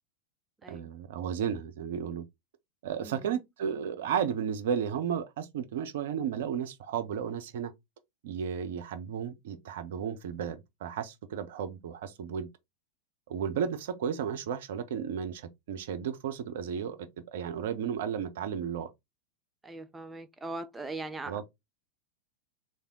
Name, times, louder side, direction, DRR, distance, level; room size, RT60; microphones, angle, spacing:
voice 1, 0.7-2.2 2.8-7.7 8.2-12.5 13.3-18.9 21.3-21.4, right 8 dB, 55° right, 0.6 m, -33 dB
voice 2, 3.0-3.4 19.6-21.4, right 2 dB, 10° right, 0.3 m, -40 dB
3.4 x 2.6 x 3.7 m
figure-of-eight pair, 90°, 0 cm